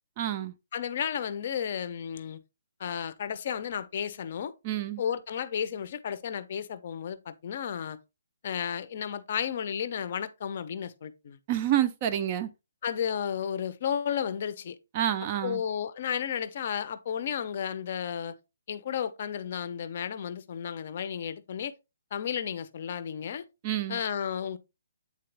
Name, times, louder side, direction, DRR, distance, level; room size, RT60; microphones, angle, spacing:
voice 1, 0.2-0.5 4.6-5.0 11.5-12.5 14.9-15.6 23.6-24.0, right 11 dB, 20° right, 0.4 m, -28 dB
voice 2, 0.7-2.4 2.8-4.5 5.0-8.0 8.4-11.4 12.8-14.8 15.4-18.3 18.7-21.7 22.1-23.5 23.9-24.6, left 8 dB, 35° left, 0.6 m, -33 dB
8.5 x 3.9 x 3.3 m
hypercardioid pair, 175°, 0 cm